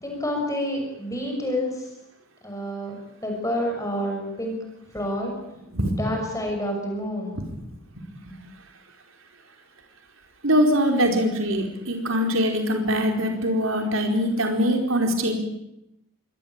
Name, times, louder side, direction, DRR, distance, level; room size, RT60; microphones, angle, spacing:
voice 1, 0.0-1.9 2.4-2.9 3.2-4.6 4.9-5.4 6.0-7.4, equal, 15° left, 1 dB, 6.3 m, -28 dB
voice 2, 10.4-15.3, equal, 65° right, 4 dB, 4.5 m, -22 dB
23.5 x 18.5 x 9.1 m, 0.85 s
head